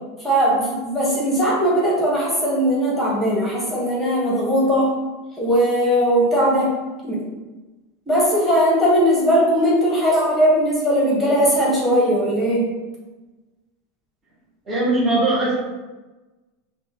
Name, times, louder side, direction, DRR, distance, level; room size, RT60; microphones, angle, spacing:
voice 1, 0.2-4.9 5.4-6.7 7.0-7.2 8.1-12.7, equal, 5° left, -6 dB, 1.1 m, -19 dB
voice 2, 14.7-15.6, right 2 dB, 20° right, -6 dB, 0.9 m, -19 dB
5.2 x 2.1 x 2.9 m, 1.2 s
supercardioid pair, 140°, 0 cm